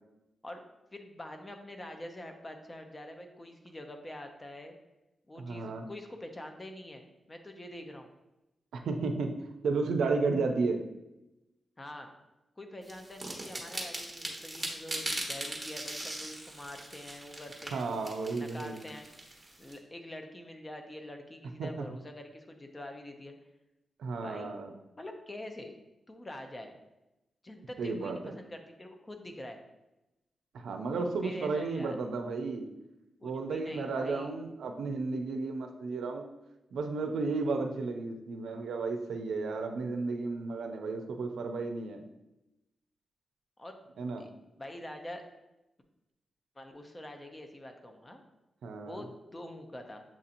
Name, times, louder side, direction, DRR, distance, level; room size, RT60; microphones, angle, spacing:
voice 1, 0.9-4.7 5.3-8.1 11.8-12.1 12.6-17.9 18.3-19.1 19.6-23.3 24.2-24.6 25.0-25.8 26.1-26.8 27.4-29.6 31.2-32.0 33.2-34.3 43.6-43.8 44.6-45.2 46.6-48.2 48.8-50.0, left 1 dB, 25° left, 5 dB, 0.6 m, -45 dB
voice 2, 5.4-5.9 8.7-9.3 9.6-10.8 17.7-18.8 21.6-21.8 24.0-24.7 27.8-28.3 30.5-32.7 33.2-36.2 36.7-42.0 44.0-44.3 48.6-49.0, right 3 dB, 90° right, 4 dB, 0.4 m, -33 dB
sound 1, 12.9-19.7, right 1 dB, 20° right, 1.1 m, -40 dB
7.2 x 2.8 x 2.6 m, 0.95 s
cardioid pair, 70°, 0 cm